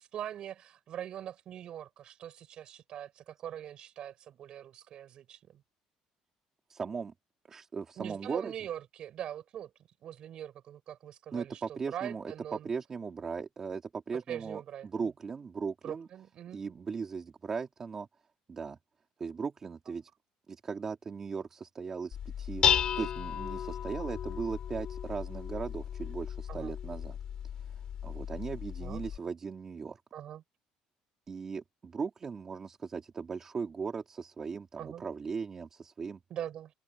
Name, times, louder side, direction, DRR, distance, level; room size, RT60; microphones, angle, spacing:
voice 1, 0.0-5.6 8.0-9.7 10.0-12.7 14.3-15.1 15.8-16.6 26.5-26.7 28.8-29.0 30.1-30.4 34.8-35.0 36.3-36.7, right 10 dB, 45° right, 5.7 m, -42 dB
voice 2, 6.7-7.1 7.5-8.5 11.3-16.1 16.5-18.1 18.5-18.8 19.2-20.1 20.5-22.7 23.0-27.2 27.6-27.7 28.0-30.0 31.3-36.2, right 5 dB, 25° right, 2.9 m, -38 dB
Dishes pots and pans, 22.1-29.2, left 9 dB, 40° left, 3.3 m, -34 dB
open air
cardioid pair, 165°, 2 cm